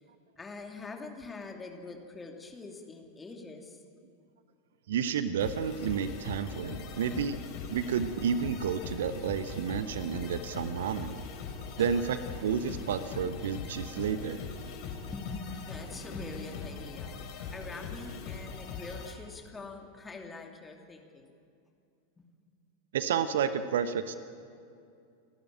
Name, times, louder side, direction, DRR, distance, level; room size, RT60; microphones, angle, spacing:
voice 1, 0.4-3.8 11.8-12.0 15.1-17.1 17.5-21.3 22.2-22.3, left 3 dB, 15° left, 2 dB, 2.6 m, -44 dB
voice 2, 4.9-7.4 7.7-11.2 11.8-12.2 12.4-14.4 22.9-24.2, right 7 dB, 60° right, 12 dB, 0.9 m, -31 dB
sound 1, 5.4-19.1, left 5 dB, 45° left, 3.6 m, -41 dB
29.5 x 12.0 x 9.0 m, 2.4 s
figure-of-eight pair, 90°, 0 cm